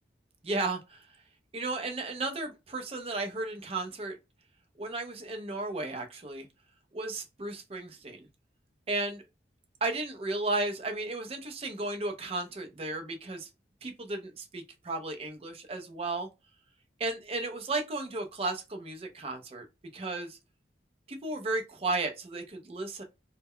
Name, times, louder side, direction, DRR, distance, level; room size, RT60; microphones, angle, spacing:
voice 1, 0.4-1.1 1.5-4.2 4.8-6.5 6.9-8.3 8.9-9.2 9.8-13.5 13.8-16.3 17.0-19.6 19.9-20.4 21.1-23.0, right 2 dB, 30° right, 0.4 m, -34 dB
2.1 x 2.0 x 3.6 m
head